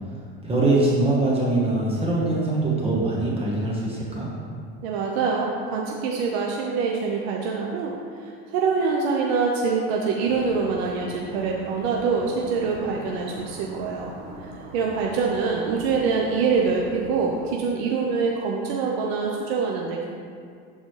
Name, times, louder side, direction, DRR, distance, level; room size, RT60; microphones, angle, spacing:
voice 1, 0.4-4.3, right 2 dB, 20° right, -5 dB, 1.3 m, -22 dB
voice 2, 4.8-14.1 14.4-20.1, right 5 dB, 85° right, -1 dB, 0.8 m, -25 dB
sound 1, 10.2-17.5, right 2 dB, 60° right, 1.2 m, -42 dB
10.5 x 4.0 x 3.2 m, 2.2 s
supercardioid pair, 125°, 30 cm